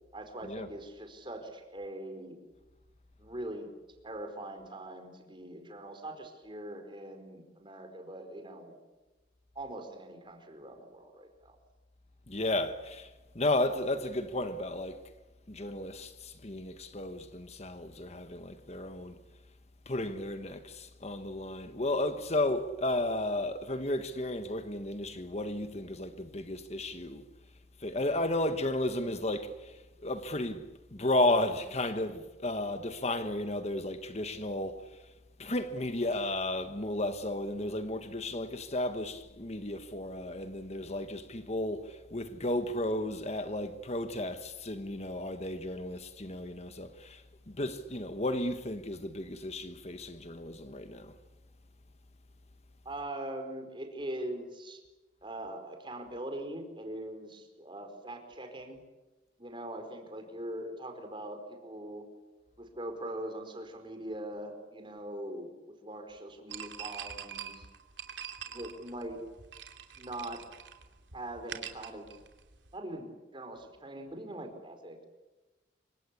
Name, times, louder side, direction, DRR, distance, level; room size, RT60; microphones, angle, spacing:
voice 1, 0.1-2.4 3.2-3.7 4.0-8.8 9.5-11.6 37.6-37.8 52.8-54.8 55.2-58.8 59.4-62.0 62.6-67.7 68.5-69.2 70.0-70.4 71.1-72.1 72.7-75.0, right 1 dB, 25° right, 4.7 m, -42 dB
voice 2, 12.3-15.0 15.5-19.2 19.8-27.2 27.8-30.7 30.9-35.0 35.4-51.1, left 1 dB, 35° left, 1.4 m, -33 dB
sound 1, 66.5-72.8, right 8 dB, 80° right, 2.9 m, -45 dB
28.0 x 24.5 x 8.5 m
head